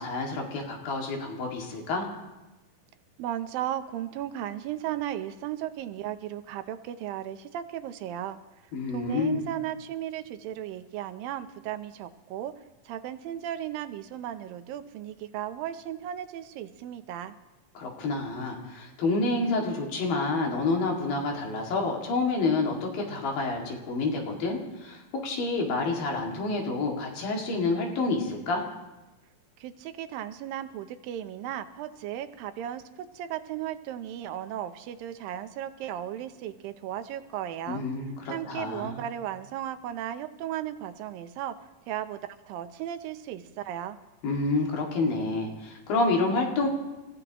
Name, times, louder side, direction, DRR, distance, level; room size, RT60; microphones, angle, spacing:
voice 1, 0.0-2.1 8.7-9.4 17.8-28.6 37.7-38.1 38.5-39.0 44.2-46.7, left 3 dB, 75° left, 0 dB, 4.0 m, -28 dB
voice 2, 3.2-8.4 8.9-12.5 12.9-17.3 29.6-37.8 38.3-41.6 41.9-42.2 42.5-44.0, right 11 dB, 80° right, 10 dB, 2.5 m, -35 dB
30.0 x 16.0 x 3.0 m, 1.1 s
omnidirectional pair, 4.1 m